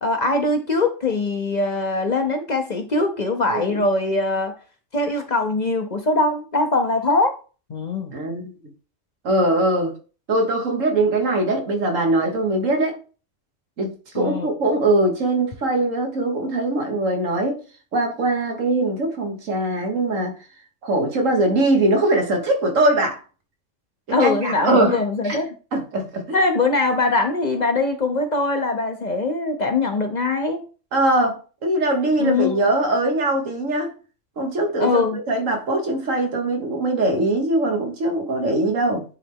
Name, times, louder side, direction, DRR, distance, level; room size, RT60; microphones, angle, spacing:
voice 1, 0.0-4.5 4.9-7.4 7.7-8.1 14.1-14.5 24.1-25.5 26.3-30.6 32.2-32.6 34.8-35.2, left 3 dB, 40° left, 0.7 m, -22 dB
voice 2, 3.5-3.9 8.1-8.5 9.2-9.9 10.3-13.0 13.8-17.6 17.9-20.4 20.8-23.2 24.1-25.0 25.2-25.4 25.7-26.4 30.9-33.9 34.4-35.0 35.3-39.0, right 2 dB, 85° right, 1.7 m, -21 dB
9.8 x 3.3 x 3.5 m
omnidirectional pair, 1.3 m